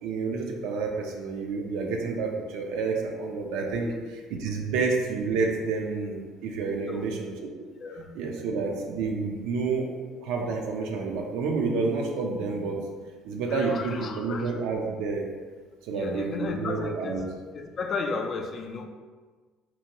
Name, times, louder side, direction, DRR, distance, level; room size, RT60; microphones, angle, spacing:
voice 1, 0.0-3.9 4.4-7.3 8.2-9.9 10.2-12.8 13.2-15.3 15.9-17.2, right 4 dB, 80° right, 1 dB, 0.3 m, -29 dB
voice 2, 13.5-14.6 15.9-18.8, left 4 dB, 40° left, 4 dB, 0.3 m, -34 dB
2.7 x 2.1 x 2.8 m, 1.4 s
cardioid pair, 110°, 0 cm